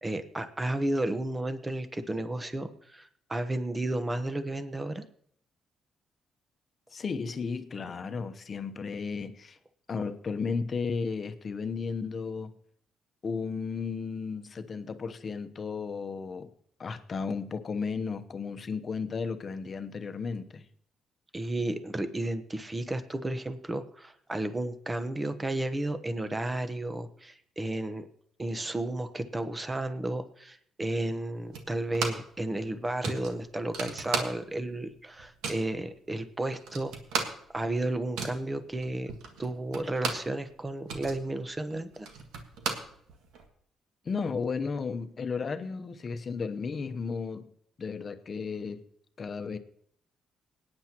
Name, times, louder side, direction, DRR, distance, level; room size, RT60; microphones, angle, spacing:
voice 1, 0.0-5.0 21.3-28.1 28.4-37.3 37.5-39.1 39.4-42.1, right 1 dB, 20° right, 1.1 m, -33 dB
voice 2, 6.9-9.6 9.9-12.6 13.2-16.5 16.8-20.7 44.0-47.5 47.8-48.8 49.2-49.6, left 5 dB, 45° left, 0.9 m, -34 dB
sound 1, 31.5-32.4 32.6-32.7 33.0-34.7 35.0-35.7 36.2-36.3 36.5-40.4 40.7-43.5, right 4 dB, 90° right, 1.7 m, -36 dB
20.5 x 9.7 x 3.0 m
cardioid pair, 90°, 0 cm